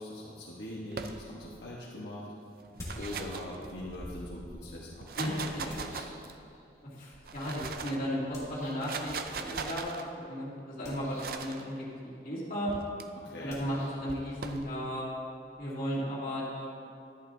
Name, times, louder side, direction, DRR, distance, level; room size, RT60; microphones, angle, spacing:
voice 1, 0.0-2.3 3.0-6.2 13.2-13.6, left 1 dB, 80° left, -6 dB, 1.2 m, -42 dB
sound 1, 0.9-1.6 2.6-4.1 4.9-6.5 7.1-8.1 8.6-10.0 11.2-11.6 12.7-13.0 14.1-14.7, right 5 dB, 55° right, 0.5 m, -40 dB
sound 2, 2.8-3.6 4.0-6.8 8.3-9.0 10.7-11.5 13.4-16.0, equal, 15° left, 1.5 m, -49 dB
voice 2, 5.2-5.7 7.0-9.9 10.3-12.7 13.4-15.1 15.6-16.7, equal, 50° left, -7 dB, 2.5 m, -35 dB
11.5 x 10.5 x 2.7 m, 2.5 s
head